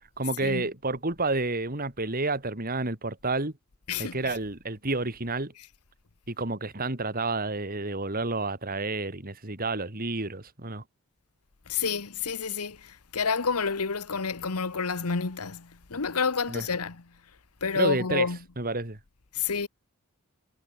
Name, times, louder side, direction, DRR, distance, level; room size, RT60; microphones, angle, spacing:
voice 1, 0.2-3.5 4.0-5.5 6.3-10.8 16.5-16.7 17.7-18.3 18.6-19.0, right 2 dB, 40° right, 3.1 m, -30 dB
voice 2, 3.9-4.3 11.7-17.0 17.6-18.4 19.3-19.7, left 5 dB, 85° left, 1.2 m, -29 dB
head